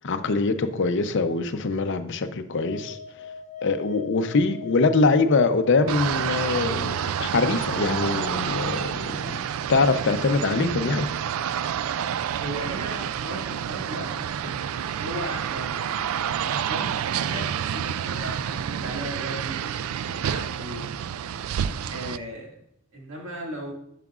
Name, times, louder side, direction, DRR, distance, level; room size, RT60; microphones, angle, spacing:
voice 1, 0.0-3.0 3.6-9.3 9.7-11.1, left 3 dB, 60° left, 0.6 m, -23 dB
sound 1, 2.5-7.6, left 5 dB, 35° left, 0.9 m, -41 dB
sound 2, 5.9-22.2, right 9 dB, 80° right, 0.3 m, -29 dB
voice 2, 12.4-16.0 16.3-21.2 21.9-22.6 22.9-23.7, right 1 dB, 65° right, 2.0 m, -37 dB
11.0 x 5.8 x 2.4 m
head